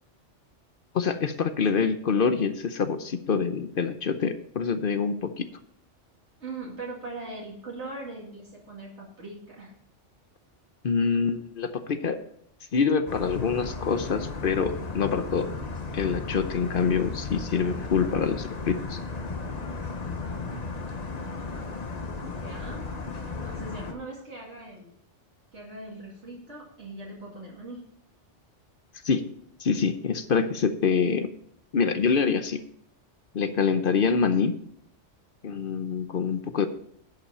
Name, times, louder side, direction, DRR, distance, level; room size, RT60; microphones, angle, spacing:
voice 1, 0.9-5.5 10.8-12.2 12.7-15.5 15.9-19.0 29.0-29.3 29.6-31.3 31.7-32.6 33.3-34.6 35.4-36.7, left 5 dB, 55° left, 10 dB, 0.8 m, -25 dB
voice 2, 6.4-9.7 21.5-22.0 22.3-22.9 23.3-24.9 25.5-27.9, right 2 dB, 65° right, -3 dB, 2.5 m, -40 dB
sound 1, 13.1-23.9, left 3 dB, 35° left, 1.0 m, -35 dB
11.0 x 5.7 x 5.5 m, 0.68 s
omnidirectional pair, 1.2 m